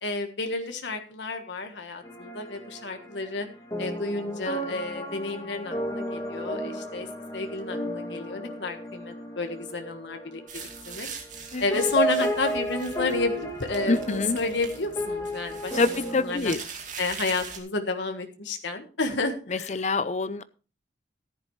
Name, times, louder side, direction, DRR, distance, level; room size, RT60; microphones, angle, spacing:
voice 1, 0.0-3.5 3.8-7.1 7.3-10.4 10.9-11.1 11.6-16.5 17.0-19.8, left 3 dB, 70° left, 5 dB, 1.5 m, -31 dB
sound 1, 2.0-11.4 11.7-16.4, equal, 20° left, 2.4 m, -33 dB
sound 2, 10.5-17.6, right 5 dB, 40° right, 2.4 m, -42 dB
voice 2, 13.9-14.4 15.8-16.6 19.7-20.4, left 3 dB, 35° left, 15 dB, 0.6 m, -25 dB
14.5 x 10.5 x 3.2 m, 0.35 s
head